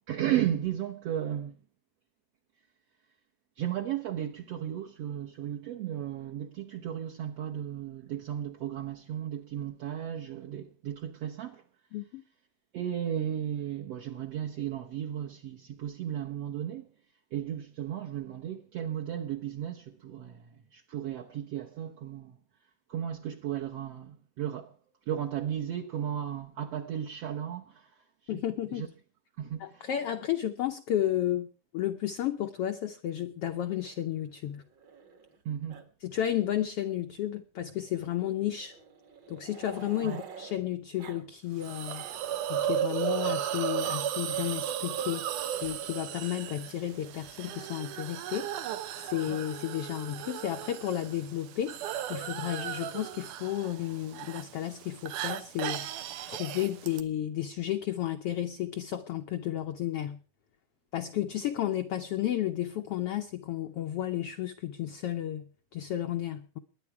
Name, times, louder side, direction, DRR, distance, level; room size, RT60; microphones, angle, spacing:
voice 1, 0.1-1.6 3.6-11.6 12.7-16.9 17.3-22.3 22.9-24.7 25.1-28.0 28.3-28.4 28.7-28.9 29.4-29.9 35.4-35.8 40.0-40.2, right 10 dB, 65° right, 1.8 m, -35 dB
voice 2, 11.9-12.2 28.3-28.9 29.6-34.6 36.0-38.8 39.3-42.0 42.5-45.3 45.6-48.5 49.0-56.0 56.3-60.2 60.9-66.6, left 12 dB, 75° left, 1.4 m, -32 dB
Growling, 33.5-35.4 35.7-35.9 36.1-36.3 36.6-36.7 37.7-40.6 41.0-41.2 41.6-42.3 43.0-43.4 44.3-44.7 45.5-45.8 46.9-47.6, right 6 dB, 45° right, 1.6 m, -50 dB
Hiss, 41.6-57.0, right 10 dB, 80° right, 2.5 m, -35 dB
21.5 x 9.9 x 4.7 m
omnidirectional pair, 3.7 m